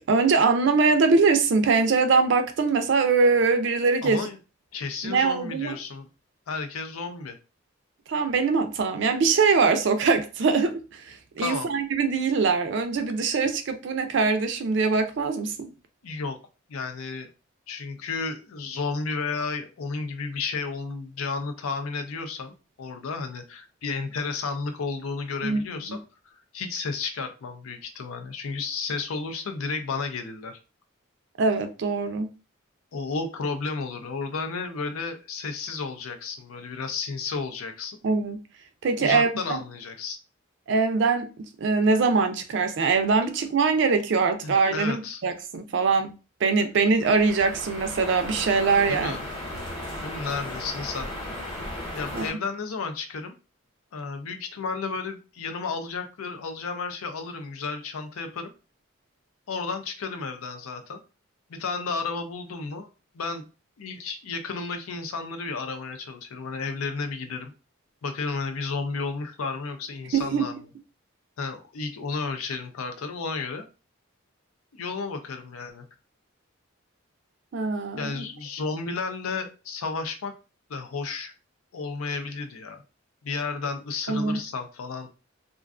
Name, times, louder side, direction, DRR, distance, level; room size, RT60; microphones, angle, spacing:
voice 1, 0.1-4.3 5.0-5.7 8.1-15.7 25.4-26.0 31.4-32.3 38.0-38.4 38.8-39.6 40.7-41.3 41.6-46.1 46.4-49.2 52.1-52.3 70.1-70.4 77.5-78.2 84.1-84.4, right 4 dB, 55° right, 0.4 m, -23 dB
voice 2, 4.0-4.4 4.7-6.1 6.5-7.4 11.4-11.7 16.0-16.4 16.7-17.3 17.7-22.5 22.8-26.0 26.3-30.6 32.9-38.0 39.0-40.2 44.4-45.2 48.9-49.3 50.0-51.1 52.0-53.3 53.9-58.5 59.5-61.0 61.5-62.9 63.1-63.5 63.8-67.5 68.0-70.6 71.4-73.6 74.7-75.9 78.0-80.3 80.7-81.3 81.7-82.8 83.2-85.1, left 4 dB, 90° left, 0.5 m, -32 dB
sound 1, 47.0-52.3, left 1 dB, 25° left, 0.9 m, -36 dB
2.4 x 2.3 x 2.4 m
head